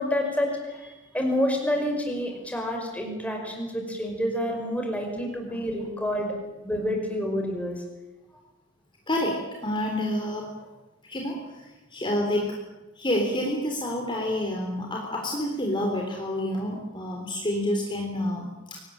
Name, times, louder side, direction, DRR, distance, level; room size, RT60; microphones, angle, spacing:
voice 1, 0.0-6.3 6.6-7.8, left 1 dB, 5° left, 2 dB, 5.5 m, -28 dB
voice 2, 9.1-10.7 11.0-12.6 13.0-18.9, left 1 dB, 25° left, 0 dB, 3.7 m, -29 dB
25.5 x 19.0 x 8.9 m, 1.1 s
head